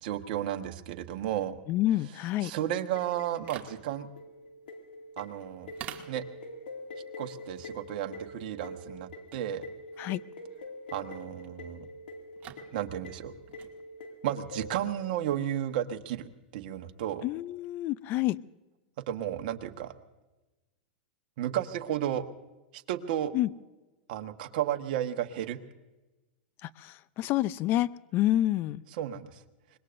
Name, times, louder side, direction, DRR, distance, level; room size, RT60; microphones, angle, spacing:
voice 1, 0.0-1.5 2.4-4.1 5.2-5.7 6.1-6.2 7.2-9.7 10.9-11.9 12.7-13.3 14.2-17.2 19.1-19.9 21.4-22.2 22.7-23.3 24.1-25.6 29.0-29.4, right 11 dB, 60° right, 5 dB, 1.4 m, -33 dB
voice 2, 1.7-2.5 10.0-10.2 17.2-18.4 23.3-23.5 26.6-28.8, left 14 dB, 40° left, 18 dB, 0.5 m, -28 dB
sound 1, 2.9-15.3, left 2 dB, 80° left, 2.2 m, -45 dB
sound 2, 3.2-17.4, right 9 dB, 35° right, 2.3 m, -52 dB
25.5 x 21.5 x 2.6 m, 1.1 s
hypercardioid pair, 125°, 5 cm